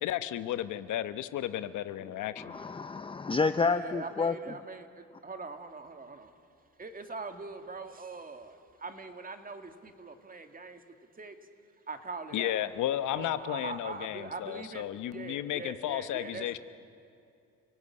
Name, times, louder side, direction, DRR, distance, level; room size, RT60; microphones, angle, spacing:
voice 1, 0.0-2.6 12.3-16.6, left 12 dB, 80° left, 12 dB, 1.0 m, -33 dB
voice 2, 2.4-4.3, left 4 dB, 20° left, 11 dB, 0.6 m, -29 dB
voice 3, 3.6-6.3 6.8-10.8 11.2-11.4 11.9-12.6 13.1-16.5, right 4 dB, 30° right, 7 dB, 2.2 m, -42 dB
29.5 x 17.0 x 9.8 m, 2.5 s
cardioid pair, 90°, 30 cm